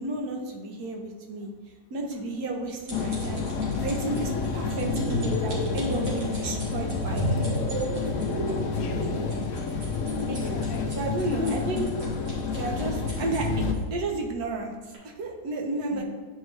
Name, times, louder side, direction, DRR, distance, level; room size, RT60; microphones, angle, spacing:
voice 1, 0.0-1.5 1.9-3.4 3.8-7.6 10.3-10.6 10.9-11.8 12.6-13.5 13.8-16.0, right 2 dB, 60° right, 1 dB, 1.3 m, -32 dB
sound 1, 2.1-13.8 14.4-14.6 14.9-15.0, right 1 dB, 90° right, 2.6 m, -45 dB
sound 2, 2.9-13.7, left 4 dB, 65° left, 0.8 m, -30 dB
sound 3, 4.7-9.3, left 1 dB, 35° right, 1.3 m, -31 dB
voice 2, 8.8-9.5 10.5-11.0 11.3-12.0 15.9-16.0, left 3 dB, 85° left, 4 dB, 1.5 m, -35 dB
9.7 x 4.7 x 3.2 m, 1.4 s
omnidirectional pair, 2.0 m